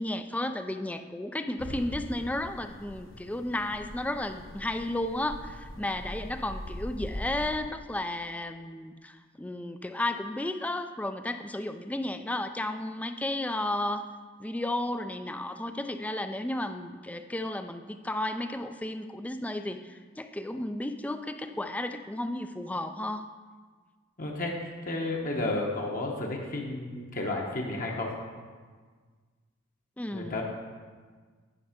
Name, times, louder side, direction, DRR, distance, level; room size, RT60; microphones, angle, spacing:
voice 1, 0.0-14.1 14.4-23.3 30.0-30.4, left 1 dB, 5° left, 9 dB, 0.3 m, -33 dB
sound 1, 1.6-7.6, left 1 dB, 70° left, 1.0 m, -42 dB
voice 2, 24.2-28.1 30.1-30.4, left 2 dB, 45° left, 0 dB, 1.0 m, -32 dB
10.0 x 5.4 x 5.1 m, 1.5 s
head